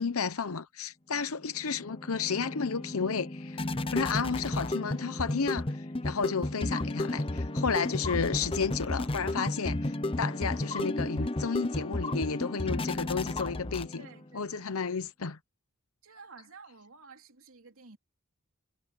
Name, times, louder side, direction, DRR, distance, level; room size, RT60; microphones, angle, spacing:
voice 1, 0.0-3.6 3.9-14.1 14.3-15.4, left 5 dB, 85° left, 0.8 m, -32 dB
sound 1, 1.5-14.3, left 1 dB, 25° left, 1.0 m, -33 dB
voice 2, 14.0-14.7 16.0-18.0, right 4 dB, 75° right, 3.2 m, -52 dB
head